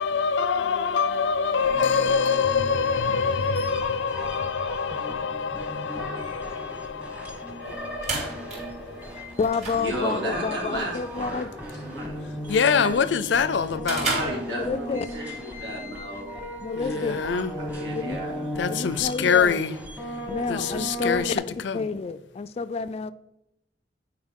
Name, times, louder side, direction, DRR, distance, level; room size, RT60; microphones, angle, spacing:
voice 1, 0.0-9.3 12.5-14.2 16.7-17.5 18.6-19.8 20.4-21.9, left 6 dB, 90° left, 0.5 m, -25 dB
sound 1, 1.6-21.4, equal, 10° right, 1.1 m, -37 dB
sound 2, 7.6-15.1, right 2 dB, 40° right, 3.0 m, -35 dB
voice 2, 8.2-8.5 9.7-11.5 11.7-12.3 12.6-12.9 14.0-16.3 16.8-19.0, right 1 dB, 85° right, 2.9 m, -35 dB
voice 3, 9.4-11.5 14.5-15.1 16.6-17.2 17.9-18.2 18.7-19.6 20.3-23.1, left 4 dB, 35° left, 0.3 m, -29 dB
9.6 x 4.7 x 3.7 m
head